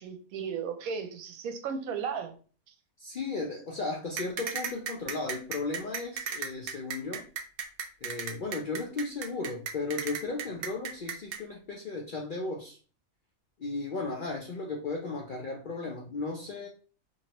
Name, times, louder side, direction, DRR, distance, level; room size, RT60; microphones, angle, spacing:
voice 1, 0.0-2.4, right 6 dB, 85° right, 1.0 m, -35 dB
voice 2, 3.0-7.2 8.0-12.8 13.6-16.7, left 3 dB, 70° left, 0.4 m, -35 dB
sound 1, 4.2-11.4, right 7 dB, 65° right, 0.8 m, -35 dB
3.0 x 2.7 x 2.8 m
omnidirectional pair, 1.5 m